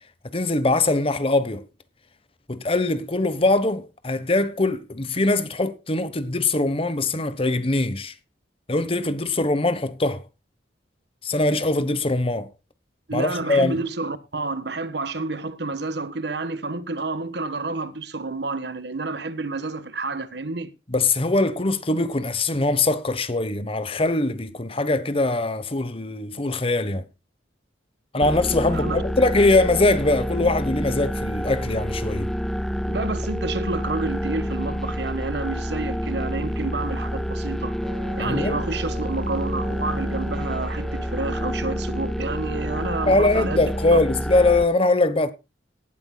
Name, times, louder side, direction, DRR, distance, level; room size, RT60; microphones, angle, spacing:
voice 1, 0.3-1.6 2.5-8.1 8.7-10.2 11.2-12.5 13.1-13.8 20.9-27.0 28.1-32.3 38.2-38.6 43.1-45.3, left 2 dB, 30° left, 1.2 m, -22 dB
voice 2, 13.1-20.7 28.7-29.0 32.9-37.8 38.2-43.6 43.9-44.0, right 3 dB, 65° right, 1.4 m, -29 dB
sound 1, 28.2-44.6, equal, ahead, 0.6 m, -28 dB
Wind instrument woodwind instrument, 37.8-41.9, right 1 dB, 30° right, 5.7 m, -42 dB
18.0 x 12.5 x 2.3 m
head